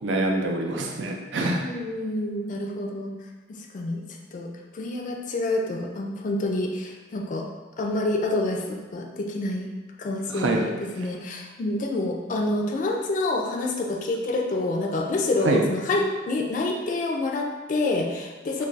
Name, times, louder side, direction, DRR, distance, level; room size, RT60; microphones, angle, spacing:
voice 1, 0.0-1.6 10.3-10.7 15.4-15.6, right 2 dB, 85° right, 1 dB, 0.5 m, -25 dB
voice 2, 1.5-3.1 3.5-4.0 4.3-7.5 7.8-9.7 10.0-18.7, left 2 dB, 45° left, 2 dB, 0.3 m, -27 dB
2.3 x 2.3 x 3.9 m, 1.2 s
head